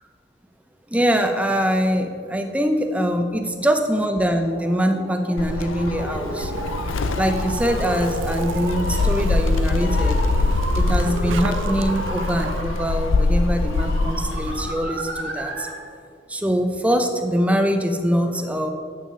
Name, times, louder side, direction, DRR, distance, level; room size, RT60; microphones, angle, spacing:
voice 1, 0.9-6.5 7.2-10.2 10.7-15.7 16.3-18.7, equal, 5° right, 5 dB, 0.6 m, -23 dB
sound 1, 3.2-15.9, right 1 dB, 60° right, 1.1 m, -34 dB
Gull seagull, 5.4-14.7, left 3 dB, 80° left, 0.5 m, -24 dB
Zipper (clothing), 6.0-12.6, right 5 dB, 75° right, 0.4 m, -33 dB
9.1 x 6.1 x 5.3 m, 2.3 s
head